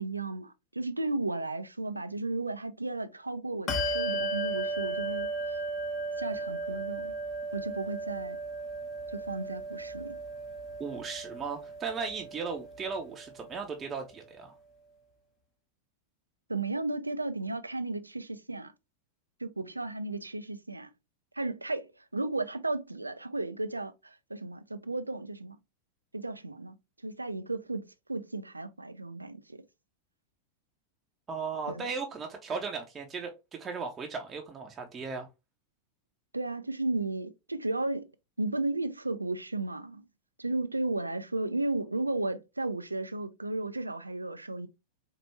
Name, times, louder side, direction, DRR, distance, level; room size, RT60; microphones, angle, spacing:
voice 1, 0.0-5.6 6.2-7.1 7.5-8.4 9.1-10.2 16.5-18.7 19.4-20.9 21.3-25.6 26.1-26.8 27.0-29.6 31.7-31.9 36.3-38.1 38.4-40.0 40.4-44.7, right 2 dB, 80° right, 0.4 m, -34 dB
Bell, 3.7-13.7, right 2 dB, 35° left, 1.0 m, -35 dB
voice 2, 10.8-14.5 31.3-35.3, right 5 dB, 20° right, 0.7 m, -36 dB
4.5 x 2.5 x 3.1 m
figure-of-eight pair, 90°, 0 cm